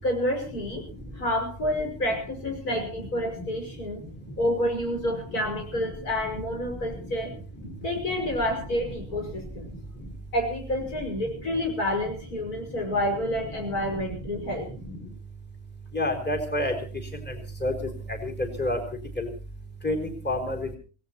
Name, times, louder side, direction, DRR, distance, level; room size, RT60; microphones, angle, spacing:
voice 1, 0.0-0.9 1.1-4.0 4.4-7.3 7.8-9.7 10.3-14.7, left 1 dB, 85° left, 3 dB, 6.3 m, -29 dB
voice 2, 15.9-16.7 17.6-17.7 18.2-18.8 19.2-19.3 19.8-20.8, left 1 dB, 5° left, 2 dB, 3.8 m, -27 dB
26.5 x 17.5 x 2.9 m, 0.36 s
omnidirectional pair, 1.5 m